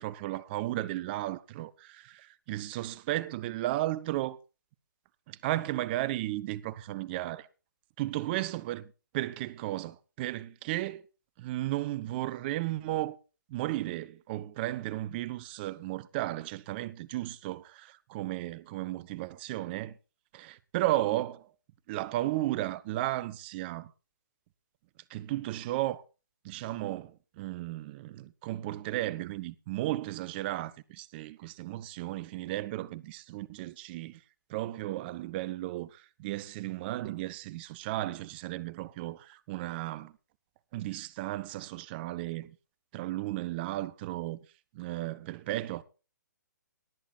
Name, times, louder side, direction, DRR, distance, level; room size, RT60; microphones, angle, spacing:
voice 1, 0.0-4.4 5.3-7.5 8.0-8.9 9.1-11.0 11.4-13.2 13.5-20.0 20.3-21.5 21.9-23.9 25.1-26.0 26.4-34.2 34.5-40.1 40.7-42.6 42.9-44.4 44.7-45.8, right 16 dB, 30° right, 0.7 m, -34 dB
18.5 x 8.9 x 4.3 m
figure-of-eight pair, 135°, 10 cm